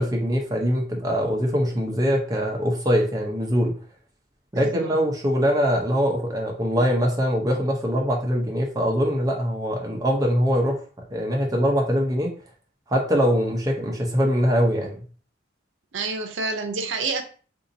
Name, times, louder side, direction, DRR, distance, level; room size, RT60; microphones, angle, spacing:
voice 1, 0.0-3.7 4.5-10.8 11.1-12.3 12.9-15.0, equal, 20° right, 0 dB, 0.7 m, -23 dB
voice 2, 4.5-4.9 15.9-17.2, right 3 dB, 70° right, 6 dB, 0.6 m, -28 dB
3.8 x 2.7 x 2.6 m, 0.40 s
head